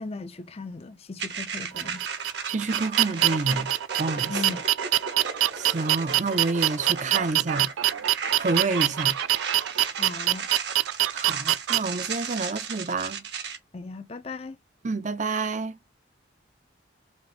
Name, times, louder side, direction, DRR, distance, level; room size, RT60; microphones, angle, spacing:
voice 1, 0.0-2.0 4.3-4.6 10.0-10.5 13.7-14.6, left 3 dB, 30° left, 0.5 m, -37 dB
sound 1, 1.2-13.6, right 6 dB, 60° right, 1.1 m, -35 dB
sound 2, 1.7-11.8, right 13 dB, 90° right, 0.4 m, -24 dB
voice 2, 2.4-3.7 4.0-4.5 5.5-7.7 8.3-9.2 11.1-13.2 14.8-15.8, right 3 dB, 40° right, 0.6 m, -28 dB
5.0 x 2.6 x 3.1 m
head